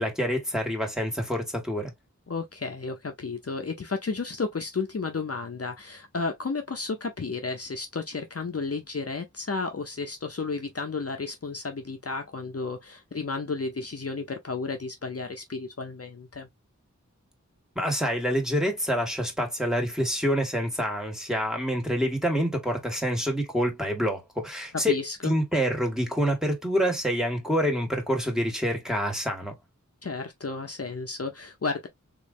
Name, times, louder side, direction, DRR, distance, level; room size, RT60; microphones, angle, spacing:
voice 1, 0.0-1.9 17.8-29.6, equal, ahead, 1.7 m, -27 dB
voice 2, 2.3-16.5 24.9-25.3 30.0-31.9, left 4 dB, 50° left, 0.7 m, -32 dB
3.8 x 3.1 x 2.5 m
wide cardioid pair, 45°, 30 cm